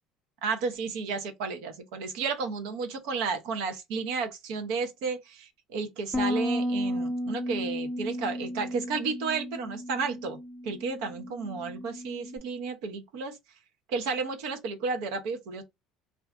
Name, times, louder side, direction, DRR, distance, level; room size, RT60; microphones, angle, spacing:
voice 1, 0.4-10.4 10.6-13.4 13.9-15.6, right 4 dB, 80° right, 0.7 m, -32 dB
Bass guitar, 6.1-12.4, equal, 5° left, 0.5 m, -33 dB
2.5 x 2.4 x 3.3 m
supercardioid pair, 110°, 0 cm